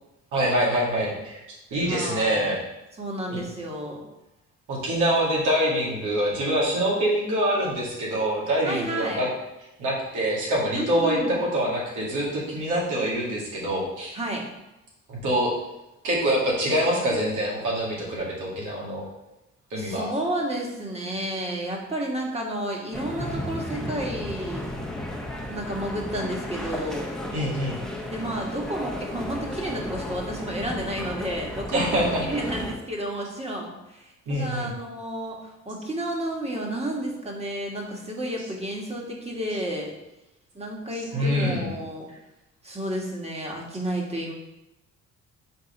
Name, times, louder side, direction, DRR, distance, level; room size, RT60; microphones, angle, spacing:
voice 1, 0.3-1.4 1.7-2.6 3.3-3.4 4.7-9.3 9.8-14.1 15.1-15.5 16.0-19.0 19.7-20.1 27.3-27.8 31.7-32.2 34.3-34.7 41.1-41.6, equal, 90° right, -5 dB, 2.2 m, -25 dB
voice 2, 1.8-2.5 3.0-4.0 8.6-9.2 10.7-11.4 14.1-14.4 19.8-24.7 25.5-27.1 28.1-39.9 40.5-42.1 42.6-44.3, right 1 dB, 20° right, -1 dB, 1.6 m, -31 dB
sound 1, 22.9-32.8, left 1 dB, ahead, 1.1 m, -34 dB
5.7 x 3.6 x 5.3 m, 0.93 s
cardioid pair, 90°, 30 cm